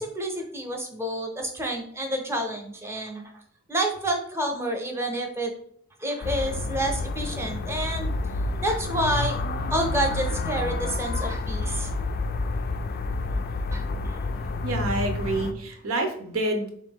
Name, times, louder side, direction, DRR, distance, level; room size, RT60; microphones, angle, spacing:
voice 1, 0.0-3.3 3.7-5.5 6.0-8.1 8.6-9.4 9.7-11.9 13.7-14.3, right 1 dB, 10° right, 3 dB, 0.7 m, -29 dB
sound 1, 6.2-15.5, left 3 dB, 45° left, 0.3 m, -29 dB
voice 2, 14.6-16.7, right 2 dB, 90° right, 4 dB, 0.8 m, -27 dB
4.1 x 2.8 x 3.5 m, 0.64 s
head